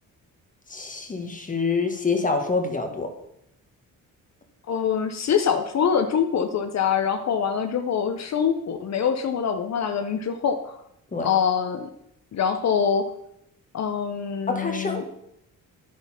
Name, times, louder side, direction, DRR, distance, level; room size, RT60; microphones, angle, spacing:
voice 1, 0.7-3.1 11.1-11.3 14.5-15.1, left 4 dB, 25° left, 4 dB, 1.3 m, -26 dB
voice 2, 4.7-10.8 11.2-11.9 12.3-13.1 13.7-15.0, left 7 dB, 50° left, 6 dB, 0.8 m, -24 dB
10.5 x 6.4 x 5.7 m, 0.78 s
cardioid pair, 130°, 34 cm